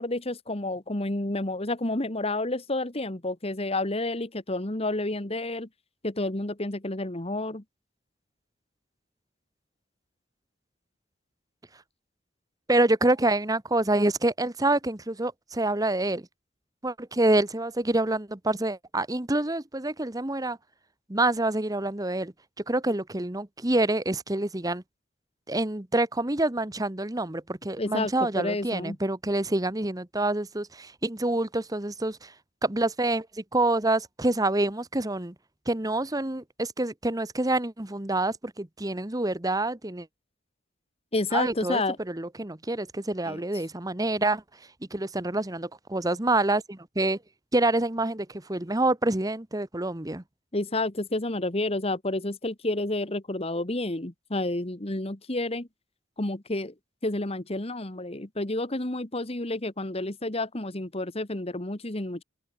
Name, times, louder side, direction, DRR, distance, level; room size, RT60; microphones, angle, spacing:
voice 1, 0.0-5.7 6.0-7.6 27.8-29.0 41.1-42.0 43.3-43.4 50.5-55.7 56.2-56.7 57.0-62.2, left 2 dB, 30° left, 1.5 m, -30 dB
voice 2, 12.7-16.3 16.8-20.6 21.1-22.3 22.7-24.8 25.5-32.3 32.6-35.3 35.7-40.1 41.3-44.4 44.9-47.2 47.5-50.2, right 2 dB, 20° right, 1.1 m, -27 dB
open air
head